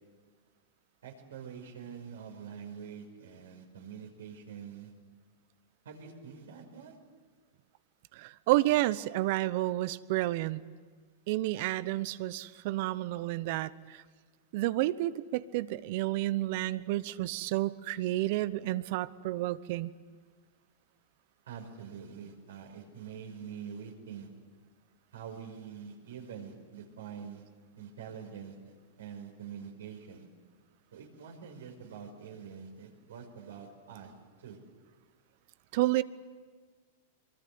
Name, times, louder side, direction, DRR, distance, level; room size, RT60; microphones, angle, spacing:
voice 1, 1.0-4.9 5.8-7.0 21.5-24.3 25.1-27.4 27.8-30.3 30.9-34.1 34.4-34.6, right 7 dB, 80° right, 3 dB, 5.4 m, -45 dB
voice 2, 8.2-10.6 11.3-14.0 14.5-19.9 35.7-36.0, right 16 dB, 60° right, 17 dB, 0.9 m, -30 dB
23.5 x 23.5 x 9.5 m, 1.5 s
hypercardioid pair, 115°, 0 cm